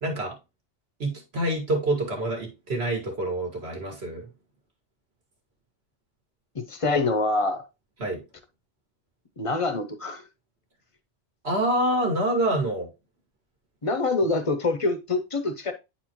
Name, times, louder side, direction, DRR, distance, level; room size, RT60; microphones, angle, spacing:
voice 1, 0.0-0.4 1.0-4.3 8.0-8.2 11.4-12.9, right 1 dB, 60° right, 2.0 m, -26 dB
voice 2, 6.5-7.6 9.4-10.2 13.8-15.7, left 3 dB, 35° left, 0.6 m, -25 dB
8.9 x 4.3 x 2.9 m
omnidirectional pair, 1.2 m